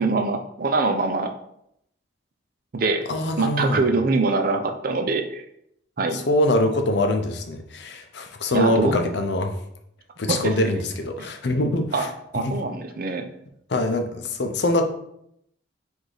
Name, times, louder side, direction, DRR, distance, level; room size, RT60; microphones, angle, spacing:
voice 1, 0.0-1.3 2.7-3.1 3.4-5.4 6.0-6.2 8.5-9.1 10.3-10.8 11.9-12.1 12.3-13.3, right 3 dB, 50° right, 5 dB, 0.5 m, -23 dB
voice 2, 3.1-3.8 6.1-9.5 10.2-12.1 12.3-12.6 13.7-14.8, left 1 dB, 65° left, 5 dB, 0.5 m, -24 dB
4.8 x 2.6 x 3.9 m, 0.74 s
head